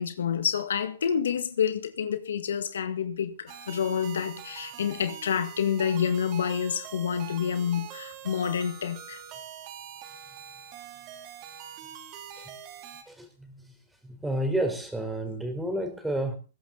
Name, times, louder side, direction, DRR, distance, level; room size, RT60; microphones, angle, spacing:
voice 1, 0.0-9.2, left 7 dB, 75° left, 1.9 m, -28 dB
sound 1, 3.5-13.0, right 9 dB, 35° right, 3.3 m, -44 dB
voice 2, 14.1-16.4, right 1 dB, 5° right, 4.4 m, -29 dB
21.0 x 11.5 x 4.0 m
hypercardioid pair, 135°, 0 cm